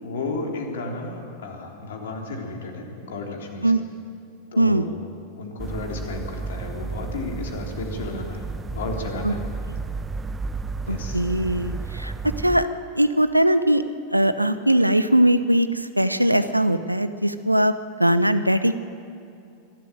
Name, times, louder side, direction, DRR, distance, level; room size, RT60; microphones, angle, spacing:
voice 1, 0.0-3.7 4.5-5.0 5.4-9.4 10.8-11.2 11.5-11.9, left 3 dB, 60° left, 1 dB, 3.5 m, -33 dB
sound 1, 5.6-12.7, right 4 dB, 15° right, 0.6 m, -32 dB
voice 2, 10.9-12.1 12.4-12.7 12.9-13.8 14.1-17.7 18.0-18.7, right 1 dB, 90° right, 12 dB, 0.8 m, -20 dB
24.5 x 12.5 x 9.2 m, 2.5 s
figure-of-eight pair, 90°, 0 cm